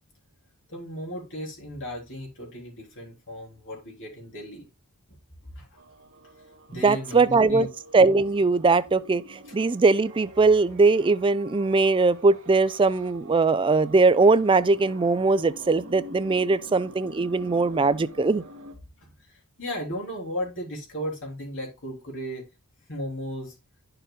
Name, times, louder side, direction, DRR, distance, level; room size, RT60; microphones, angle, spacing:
voice 1, 0.7-4.7 5.5-5.7 6.7-7.7 19.0-22.5 22.9-23.5, equal, 60° left, 3.6 m, -35 dB
sound 1, 5.7-18.7, right 1 dB, 65° right, 1.7 m, -46 dB
voice 2, 6.7-7.7 7.9-18.4, right 3 dB, 25° right, 0.4 m, -21 dB
10.0 x 6.8 x 2.2 m
head